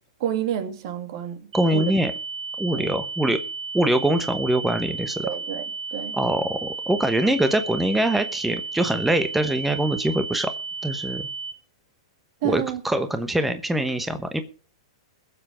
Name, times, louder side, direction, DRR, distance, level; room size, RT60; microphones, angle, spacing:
voice 1, 0.2-1.9 2.7-2.9 5.2-5.7 5.9-6.2 12.4-12.8, right 9 dB, 55° right, 2.6 m, -29 dB
voice 2, 1.5-2.1 2.6-3.4 3.7-5.3 6.1-10.5 10.8-11.3 12.4-14.4, right 1 dB, 5° right, 1.1 m, -23 dB
sound 1, 1.5-11.5, right 5 dB, 75° right, 2.6 m, -33 dB
21.5 x 7.6 x 5.0 m
hypercardioid pair, 125°, 3 cm